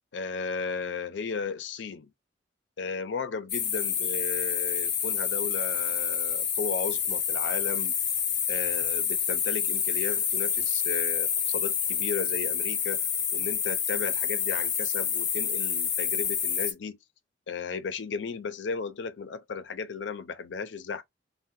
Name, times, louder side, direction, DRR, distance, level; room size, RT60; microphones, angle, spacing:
voice 1, 0.1-2.1 2.8-8.0 8.5-17.0 17.5-21.0, left 5 dB, 85° left, 0.5 m, -35 dB
sound 1, 3.5-16.7, left 7 dB, 25° left, 0.4 m, -28 dB
2.7 x 2.2 x 3.5 m
head